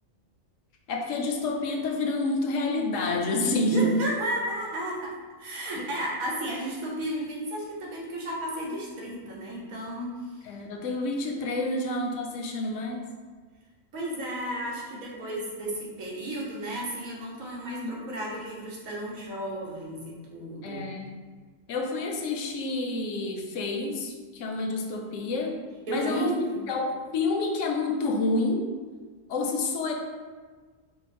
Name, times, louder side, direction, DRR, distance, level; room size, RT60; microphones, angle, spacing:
voice 1, 0.9-4.0 5.7-5.9 10.4-13.0 17.7-18.0 20.6-21.2 21.7-25.6 25.9-26.4 26.7-28.7 29.3-29.9, left 2 dB, 70° left, 2 dB, 0.9 m, -28 dB
voice 2, 3.7-5.1 5.4-10.1 13.9-20.9 25.9-26.6, right 1 dB, 90° right, -4 dB, 1.4 m, -33 dB
4.4 x 2.0 x 4.1 m, 1.5 s
omnidirectional pair, 1.4 m